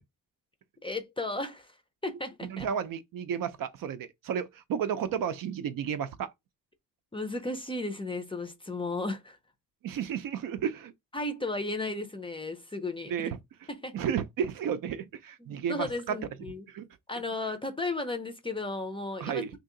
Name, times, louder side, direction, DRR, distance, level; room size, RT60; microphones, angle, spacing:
voice 1, 0.8-1.7 2.0-2.7 7.1-9.4 11.1-13.3 13.7-14.0 15.4-16.7 17.1-19.4, left 2 dB, 15° left, 0.5 m, -34 dB
voice 2, 2.4-6.3 9.8-10.9 13.1-13.4 13.9-16.2 16.7-16.9 19.2-19.5, right 8 dB, 60° right, 0.5 m, -32 dB
2.8 x 2.7 x 3.7 m
cardioid pair, 115°, 39 cm